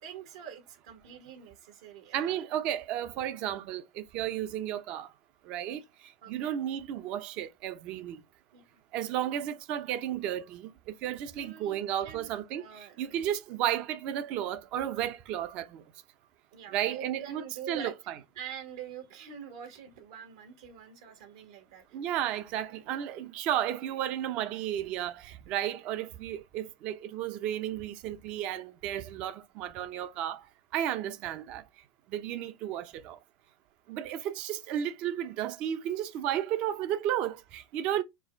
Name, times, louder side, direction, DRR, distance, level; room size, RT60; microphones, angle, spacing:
voice 1, 0.0-2.4 5.7-5.8 6.2-6.5 8.5-8.8 11.2-13.3 16.5-17.9 18.3-22.0 22.7-22.9, right 8 dB, 70° right, 1.7 m, -46 dB
voice 2, 2.1-5.1 5.5-5.8 6.3-8.2 8.9-12.6 13.0-15.8 16.7-17.9 21.9-30.4 30.7-31.6 32.1-33.2 33.9-38.0, right 11 dB, 45° right, 0.7 m, -33 dB
4.7 x 2.4 x 4.5 m
supercardioid pair, 135°, 3 cm